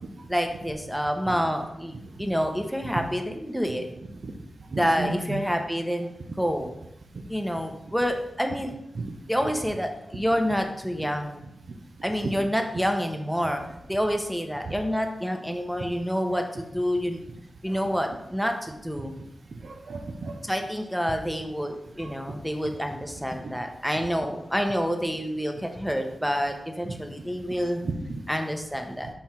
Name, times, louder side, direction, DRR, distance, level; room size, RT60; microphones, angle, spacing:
voice 1, 0.3-3.9 4.8-6.1 6.4-6.7 7.3-8.7 9.3-11.4 12.0-13.6 13.9-17.2 17.6-19.1 20.4-27.8 28.3-29.1, equal, ahead, 4 dB, 1.0 m, -28 dB
voice 2, 4.7-5.4 8.9-9.1 12.2-12.3 13.4-13.6 14.9-15.0 17.7-18.1 19.6-20.4 22.0-22.1 23.4-23.5 24.6-24.7 27.8-28.2, right 3 dB, 70° right, 3 dB, 0.9 m, -34 dB
5.5 x 4.4 x 5.8 m, 0.84 s
wide cardioid pair, 75°, 0 cm